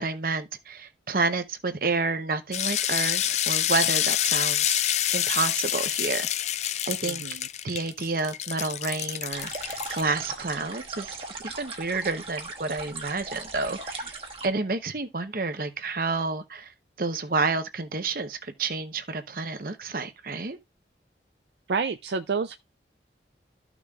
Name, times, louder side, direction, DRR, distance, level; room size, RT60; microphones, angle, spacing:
voice 1, 0.0-4.8 5.1-6.3 6.9-7.2 7.6-14.1 14.4-20.6, right 3 dB, 50° right, 0.9 m, -30 dB
sound 1, 2.5-10.0, left 11 dB, 40° left, 0.4 m, -27 dB
voice 2, 7.1-7.5 21.7-22.6, right 5 dB, 70° right, 0.4 m, -29 dB
sound 2, 9.3-14.5, right 3 dB, 30° right, 1.4 m, -38 dB
13.5 x 6.0 x 2.4 m
head